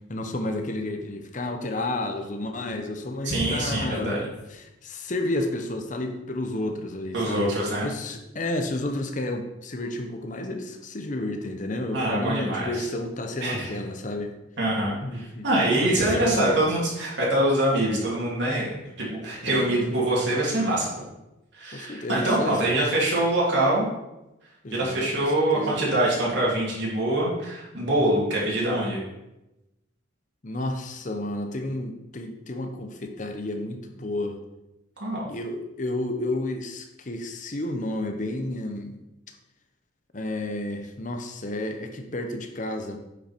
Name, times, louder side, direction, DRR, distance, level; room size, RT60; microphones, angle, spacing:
voice 1, 0.1-7.5 7.8-14.3 15.0-15.5 15.8-16.6 19.4-19.9 21.7-22.6 24.6-25.8 30.4-34.4 35.3-39.0 40.1-43.0, left 1 dB, 40° left, 6 dB, 0.8 m, -31 dB
voice 2, 3.2-4.3 7.1-7.9 11.9-12.9 13.4-13.7 14.6-18.7 19.0-21.0 21.5-23.9 24.7-29.0 35.0-35.3, right 1 dB, 65° right, -5 dB, 2.8 m, -24 dB
9.5 x 5.7 x 4.5 m, 0.96 s
head